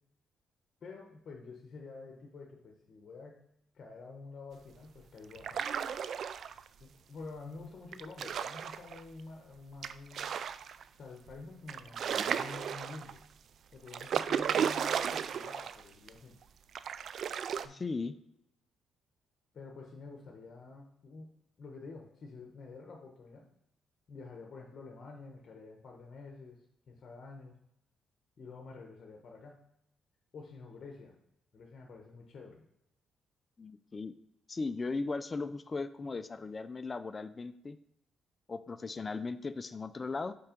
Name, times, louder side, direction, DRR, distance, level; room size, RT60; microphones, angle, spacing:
voice 1, 0.8-3.4 3.7-5.7 6.8-10.3 10.9-13.2 13.7-16.4 17.6-17.8 19.5-23.4 24.1-27.5 28.4-29.6 30.3-31.2 31.5-32.6, left 3 dB, 50° left, 1 dB, 1.1 m, -49 dB
sound 1, 5.3-6.7 7.9-9.0 9.8-10.8 11.3-11.4 11.7-13.2 13.9-15.8 16.1-16.2 16.7-17.7, right 8 dB, 60° right, 0.3 m, -34 dB
voice 2, 17.7-18.1 33.6-34.1 34.5-37.8 38.5-40.4, left 3 dB, 30° left, 11 dB, 0.4 m, -37 dB
5.5 x 4.6 x 5.1 m, 0.80 s
cardioid pair, 90°, 0 cm